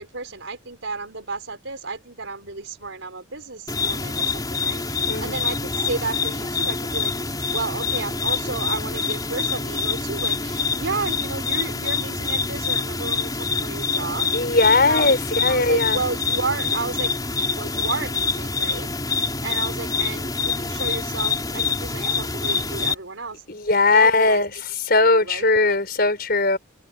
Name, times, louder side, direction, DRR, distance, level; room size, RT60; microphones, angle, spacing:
voice 1, 0.0-14.6 14.8-15.2 15.5-17.1 17.5-18.9 19.1-23.4 23.9-24.4 25.1-25.8, right 3 dB, 85° right, 4.6 m, -32 dB
sound 1, 3.7-22.9, left 4 dB, 20° left, 4.8 m, -26 dB
voice 2, 14.3-16.0 23.5-24.5 24.9-26.6, left 3 dB, 55° left, 5.5 m, -19 dB
head